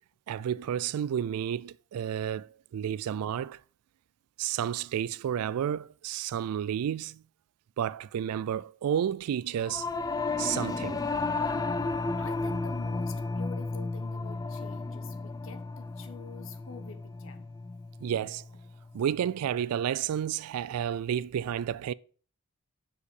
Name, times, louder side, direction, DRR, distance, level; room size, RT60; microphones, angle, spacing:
voice 1, 0.3-3.6 4.4-7.2 7.8-9.9 10.4-11.0 18.0-18.4 18.9-21.9, right 9 dB, 80° right, 0.3 m, -31 dB
Singing / Musical instrument, 9.6-19.2, left 3 dB, 15° left, 0.3 m, -33 dB
voice 2, 12.2-17.5, left 5 dB, 60° left, 1.2 m, -47 dB
6.8 x 4.8 x 7.0 m
head